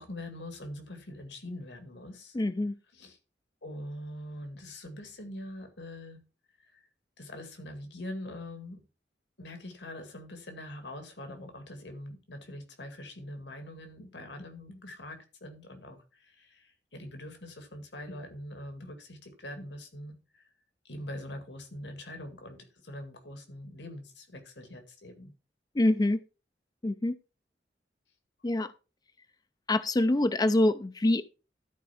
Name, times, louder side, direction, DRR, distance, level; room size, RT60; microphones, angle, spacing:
voice 1, 0.0-2.4 2.9-3.2 3.6-6.2 6.7-6.8 7.2-8.8 9.4-20.4 20.8-25.3, left 1 dB, 85° left, 2.0 m, -43 dB
voice 2, 2.3-2.7 25.8-26.2 26.8-27.2 28.4-28.7 29.7-31.2, left 1 dB, 25° left, 0.5 m, -25 dB
13.0 x 4.5 x 5.7 m
head